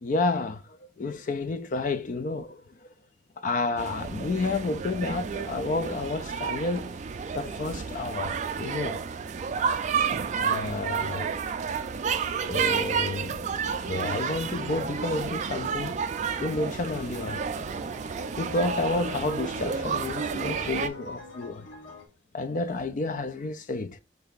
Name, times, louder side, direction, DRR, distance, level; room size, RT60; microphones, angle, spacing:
voice 1, 0.0-2.6 3.4-6.9 7.3-9.0 10.4-11.3 12.4-16.0 16.4-17.4 18.4-21.7 22.3-24.0, left 3 dB, 45° left, 0.4 m, -30 dB
sound 1, 3.8-20.9, right 6 dB, 40° right, 0.3 m, -31 dB
sound 2, 16.3-22.1, left 2 dB, 85° left, 1.1 m, -45 dB
3.3 x 3.3 x 3.8 m
head